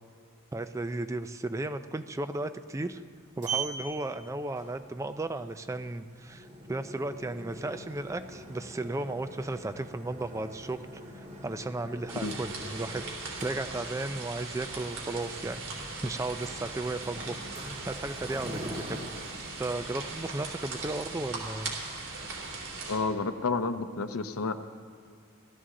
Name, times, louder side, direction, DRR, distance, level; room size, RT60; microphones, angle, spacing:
voice 1, 0.5-3.0 3.4-10.8 11.1-13.0 13.4-17.4 17.9-19.0 19.6-21.7, right 2 dB, 15° right, 10 dB, 0.3 m, -35 dB
Sliding door, 2.8-21.1, right 3 dB, 35° right, 2.2 m, -44 dB
sound 1, 12.1-23.0, right 3 dB, 70° right, 3.1 m, -39 dB
voice 2, 22.9-24.5, left 4 dB, 75° left, 10 dB, 0.7 m, -30 dB
17.0 x 12.5 x 3.7 m, 2.2 s
head